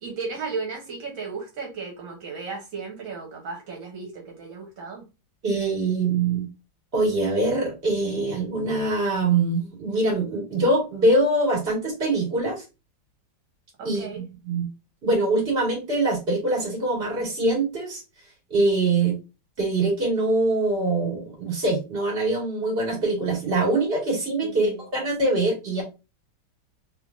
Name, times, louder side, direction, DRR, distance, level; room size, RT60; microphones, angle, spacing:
voice 1, 0.0-5.0 13.8-14.2 24.4-24.8, right 4 dB, 75° right, 0 dB, 1.7 m, -35 dB
voice 2, 5.4-6.5 6.9-12.6 13.9-14.1 14.4-14.6 15.0-18.0 18.5-19.2 19.6-25.8, right 2 dB, 30° right, -3 dB, 1.8 m, -23 dB
3.4 x 3.2 x 2.4 m, 0.27 s
omnidirectional pair, 2.2 m